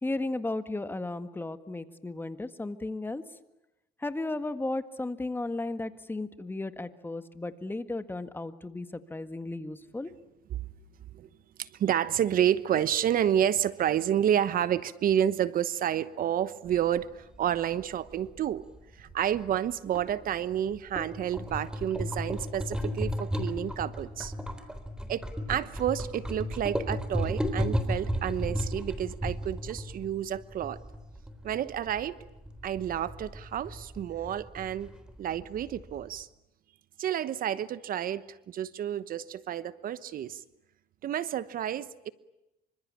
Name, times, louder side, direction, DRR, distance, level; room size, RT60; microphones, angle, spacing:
voice 1, 0.0-3.2 4.0-10.1, left 2 dB, 10° left, 10 dB, 1.7 m, -34 dB
voice 2, 11.6-18.6 19.0-24.3 25.1-30.8 31.4-32.2 32.6-34.9 35.2-36.3 37.0-40.4 41.0-42.1, right 10 dB, 55° right, 15 dB, 1.1 m, -30 dB
sound 1, 16.7-36.2, equal, 5° right, 3.7 m, -35 dB
27.0 x 25.0 x 8.7 m, 0.92 s
cardioid pair, 110°, 17 cm